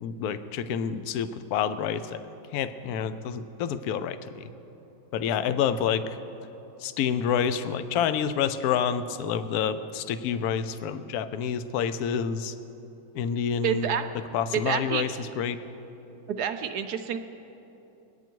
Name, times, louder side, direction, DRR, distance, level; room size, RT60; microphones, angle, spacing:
voice 1, 0.0-2.2 2.5-4.5 5.1-6.0 6.8-12.5 13.1-13.9 14.3-15.6, left 8 dB, 70° left, 11 dB, 1.0 m, -28 dB
voice 2, 13.6-14.0 14.5-15.0 16.4-17.2, right 8 dB, 70° right, 8 dB, 1.1 m, -28 dB
22.0 x 9.2 x 4.5 m, 3.0 s
omnidirectional pair, 1.9 m